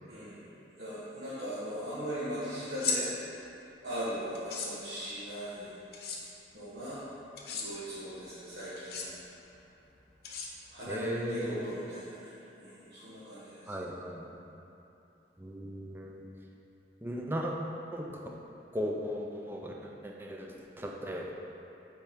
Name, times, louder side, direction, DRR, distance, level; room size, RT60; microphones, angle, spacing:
voice 1, 0.1-0.4 0.8-3.3 3.8-5.7 6.5-7.0 7.5-9.1 10.7-13.7, equal, 70° right, -12 dB, 1.2 m, -39 dB
sound 1, 2.7-3.0 4.3-4.7 5.9-6.2 7.4-7.7 8.8-9.1 10.2-10.8, left 6 dB, 60° left, 0.8 m, -34 dB
voice 2, 10.9-11.7 13.7-14.3 15.4-16.2 17.0-17.5 17.9-18.2 18.7-20.5 20.8-21.3, equal, 10° right, -1 dB, 0.5 m, -36 dB
7.2 x 4.4 x 3.5 m, 2.9 s
head